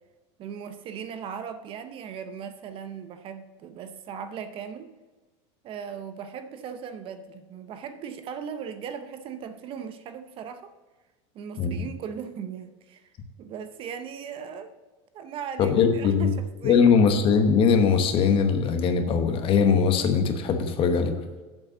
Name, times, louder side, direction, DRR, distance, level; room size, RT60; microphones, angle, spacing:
voice 1, 0.4-4.9 5.6-10.7 11.3-13.1 13.4-14.7 15.1-16.8, right 7 dB, 35° right, 10 dB, 0.7 m, -38 dB
voice 2, 15.6-16.3 16.6-21.1, left 6 dB, 35° left, 7 dB, 1.1 m, -21 dB
7.5 x 5.3 x 7.3 m, 1.3 s
supercardioid pair, 145°, 15 cm